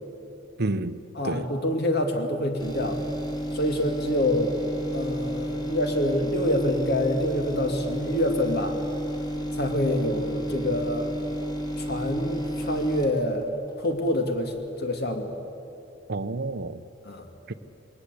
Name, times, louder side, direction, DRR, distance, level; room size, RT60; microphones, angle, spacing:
voice 1, 0.6-1.5 16.1-16.8 17.5-17.6, right 2 dB, 60° right, 0.7 m, -30 dB
voice 2, 1.2-3.0 3.5-4.5 4.9-8.8 9.6-11.1 11.8-13.5 13.8-14.5 14.8-15.3 17.1-17.2, left 1 dB, 55° left, 2.3 m, -26 dB
sound 1, 2.6-14.2 14.6-14.7, equal, 20° left, 2.5 m, -31 dB
21.5 x 18.5 x 8.3 m
head